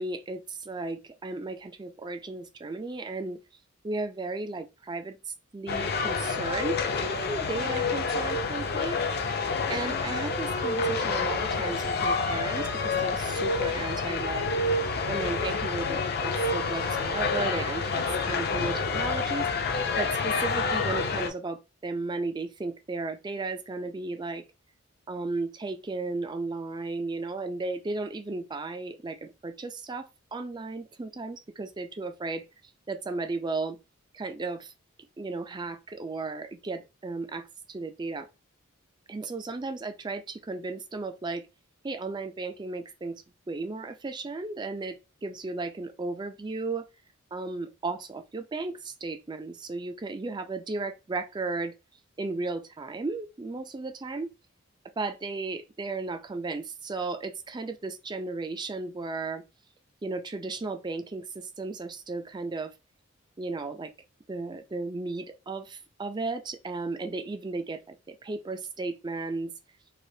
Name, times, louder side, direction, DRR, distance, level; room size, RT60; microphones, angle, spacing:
voice 1, 0.0-3.4 3.8-9.4 9.7-14.5 15.1-19.5 20.0-24.4 25.1-32.4 32.9-33.8 34.1-34.7 35.2-38.3 39.1-41.4 41.8-46.9 47.3-51.7 52.2-54.3 55.0-59.4 60.0-62.7 63.4-63.9 64.3-69.5, right 3 dB, 20° right, 0.3 m, -35 dB
sound 1, 5.7-21.3, left 4 dB, 50° left, 0.5 m, -28 dB
3.3 x 2.8 x 2.6 m
head